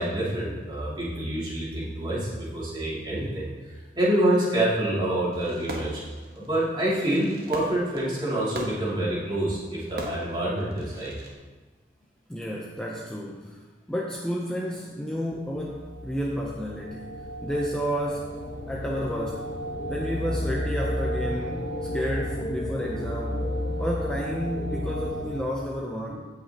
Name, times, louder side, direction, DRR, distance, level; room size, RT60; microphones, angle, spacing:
voice 1, 0.0-3.5 4.0-6.0 6.3-11.1, right 1 dB, 25° right, -7 dB, 2.5 m, -27 dB
Fireworks, 5.3-11.3, right 1 dB, 55° right, 1.2 m, -41 dB
voice 2, 12.3-13.6 13.9-18.4 18.7-19.5 19.9-21.7 21.9-23.4 23.8-26.1, equal, 5° left, -2 dB, 0.6 m, -31 dB
sound 1, 15.5-25.4, equal, 75° left, 1.1 m, -32 dB
16.0 x 5.7 x 2.9 m, 1.3 s
head